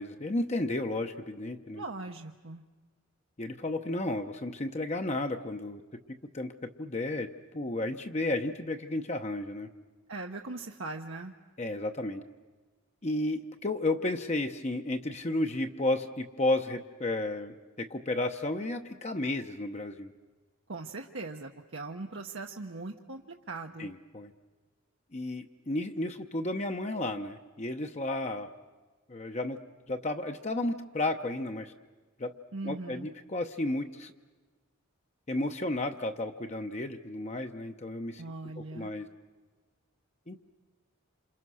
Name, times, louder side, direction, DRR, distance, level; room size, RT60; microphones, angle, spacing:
voice 1, 0.0-1.8 3.4-5.8 6.3-6.5 6.8-9.7 11.6-12.2 13.0-20.1 23.8-24.3 25.1-28.5 29.1-29.6 29.9-31.7 32.2-32.3 32.6-34.1 35.3-38.2 38.6-39.1 40.3-40.4, left 2 dB, 35° left, 5 dB, 0.9 m, -32 dB
voice 2, 1.8-2.6 10.1-11.3 20.7-23.2 23.5-23.9 32.5-33.1 38.2-38.9, right 3 dB, 70° right, 2 dB, 1.1 m, -40 dB
27.5 x 27.5 x 6.4 m, 1.3 s
head